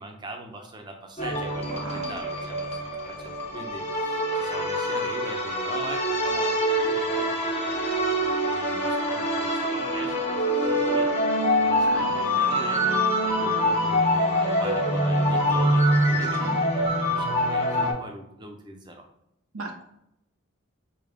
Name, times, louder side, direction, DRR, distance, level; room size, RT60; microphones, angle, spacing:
voice 1, 0.0-11.1 11.6-13.0 13.4-19.0, right 2 dB, 20° right, 3 dB, 0.6 m, -41 dB
sound 1, 1.2-17.9, equal, 30° left, 0.8 m, -25 dB
voice 2, 1.8-2.2 11.9-12.1 16.4-16.6 19.5-19.8, right 2 dB, 85° right, 2 dB, 0.7 m, -37 dB
5.1 x 2.9 x 3.4 m, 0.80 s
head